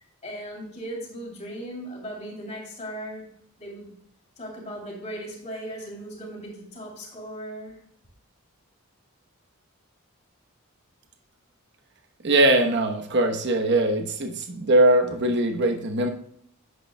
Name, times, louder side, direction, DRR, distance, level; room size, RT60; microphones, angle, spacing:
voice 1, 0.2-3.3 3.6-3.9 4.4-7.8, right 1 dB, 30° left, -2 dB, 3.0 m, -37 dB
voice 2, 12.2-16.1, right 1 dB, 50° right, 4 dB, 1.0 m, -21 dB
11.0 x 8.4 x 2.2 m, 0.64 s
head